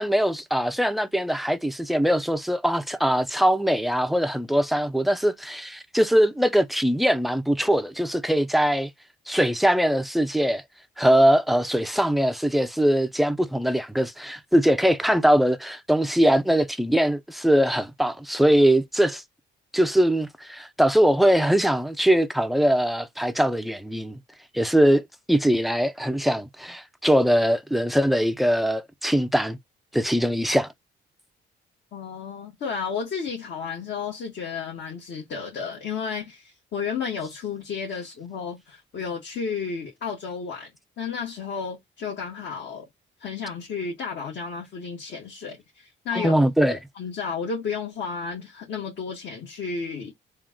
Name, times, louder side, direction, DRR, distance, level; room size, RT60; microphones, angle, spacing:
voice 1, 0.0-8.9 9.3-10.6 11.0-19.2 19.7-24.2 24.5-29.6 29.9-30.7 46.1-46.8, equal, ahead, 0.5 m, -21 dB
voice 2, 31.9-40.7 41.0-42.9 43.2-46.3 46.7-50.1, left 5 dB, 65° left, 1.7 m, -32 dB
3.7 x 2.4 x 3.7 m
cardioid pair, 90°, 20 cm